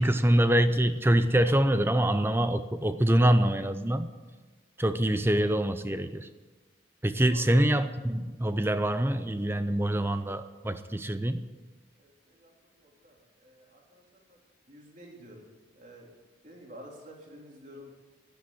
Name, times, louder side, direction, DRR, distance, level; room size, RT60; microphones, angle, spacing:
voice 1, 0.0-4.1 4.8-6.3 7.0-11.5, right 1 dB, 10° right, 11 dB, 0.6 m, -25 dB
voice 2, 12.0-14.4 14.7-15.5 15.7-16.1 16.4-18.0, equal, 40° right, -1 dB, 3.2 m, -50 dB
11.5 x 10.5 x 9.4 m, 1.3 s
head